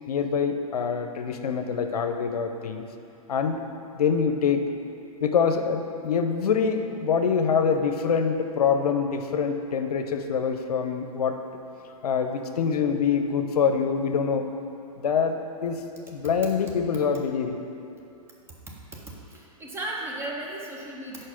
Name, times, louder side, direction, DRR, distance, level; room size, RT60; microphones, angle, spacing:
voice 1, 0.1-2.8 3.3-3.6 4.0-4.7 5.2-11.4 12.0-14.5 15.0-17.6, left 6 dB, 85° left, 7 dB, 0.6 m, -25 dB
voice 2, 18.7-21.2, right 1 dB, 15° right, -2 dB, 0.7 m, -36 dB
4.9 x 4.6 x 5.8 m, 2.8 s
hypercardioid pair, 140°, 19 cm